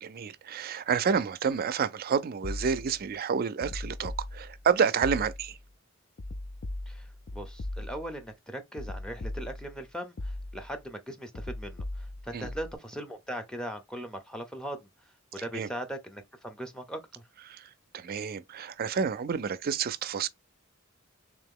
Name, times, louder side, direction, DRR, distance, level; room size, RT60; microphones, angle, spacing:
voice 1, 0.0-5.6 12.3-12.5 15.4-15.7 17.5-20.3, right 6 dB, 45° right, 0.4 m, -29 dB
sound 1, 2.4-3.1 3.6-4.7 5.0-5.6 6.2-8.2 8.8-9.8 10.2-10.8 11.3-12.8, left 1 dB, 50° left, 0.5 m, -39 dB
voice 2, 7.3-11.8 12.2-14.8 15.3-17.0, equal, 5° left, 0.7 m, -39 dB
3.5 x 2.9 x 3.6 m
head